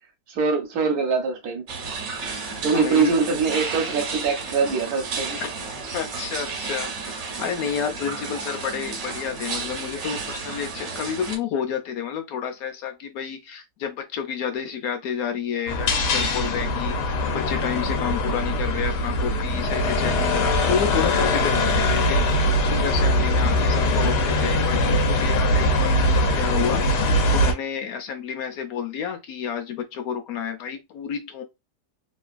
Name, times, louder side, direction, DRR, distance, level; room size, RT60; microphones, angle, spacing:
voice 1, 0.3-1.6 2.6-5.4, right 5 dB, 70° right, 1.2 m, -23 dB
sound 1, 1.7-11.4, right 4 dB, 55° right, 0.9 m, -32 dB
voice 2, 2.4-3.1 5.4-5.5 5.9-31.4, left 7 dB, 70° left, 1.0 m, -30 dB
sound 2, 15.7-27.5, left 1 dB, 90° left, 1.3 m, -22 dB
3.0 x 2.3 x 2.4 m
omnidirectional pair, 1.7 m